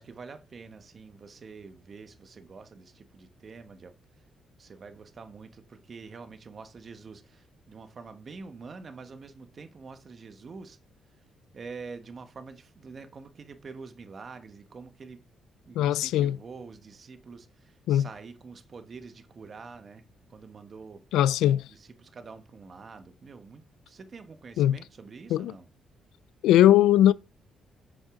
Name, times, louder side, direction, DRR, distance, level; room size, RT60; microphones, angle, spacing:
voice 1, 0.0-3.9 4.6-10.8 11.5-15.2 15.7-21.0 21.7-25.7, right 4 dB, 45° right, 1.2 m, -46 dB
voice 2, 15.8-16.4 17.9-18.1 21.1-21.6 24.6-24.8 25.3-25.5 26.4-27.1, left 12 dB, 90° left, 0.3 m, -20 dB
7.7 x 6.4 x 3.6 m
cardioid pair, 90°, 0 cm